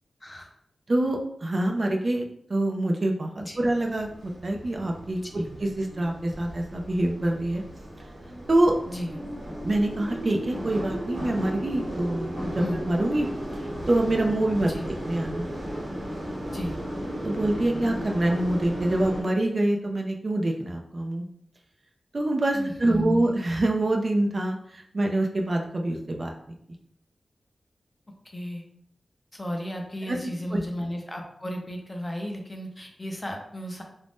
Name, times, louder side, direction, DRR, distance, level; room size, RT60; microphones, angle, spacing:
voice 1, 0.2-0.5 3.4-3.7 5.2-5.5 8.9-9.2 12.6-12.8 14.6-14.9 16.5-16.8 22.5-23.2 28.2-28.6 29.3-33.8, equal, 20° left, 2 dB, 0.5 m, -34 dB
voice 2, 0.9-2.2 2.5-7.6 8.5-8.8 9.6-13.3 13.6-14.7 15.0-15.5 17.2-21.3 22.1-26.3 30.1-30.2 30.5-30.6, right 1 dB, 45° right, 1 dB, 0.4 m, -25 dB
sound 1, 3.6-19.2, equal, 70° right, 1.2 m, -35 dB
2.5 x 2.1 x 3.3 m, 0.69 s
wide cardioid pair, 85°, 0 cm